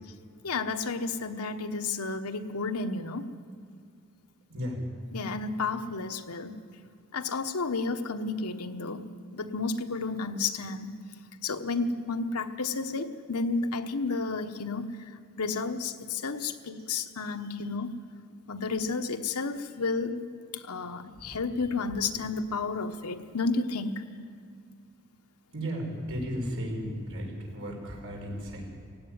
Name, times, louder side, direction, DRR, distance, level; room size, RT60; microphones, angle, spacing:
voice 1, 0.4-3.3 5.1-6.6 7.1-9.1 9.3-10.9 11.4-18.0 18.5-20.3 20.5-24.0, left 4 dB, 85° left, 7 dB, 1.1 m, -32 dB
voice 2, 4.5-4.8 21.1-21.4 25.5-28.7, equal, 65° right, 0 dB, 5.1 m, -35 dB
17.0 x 16.0 x 9.6 m, 2.3 s
head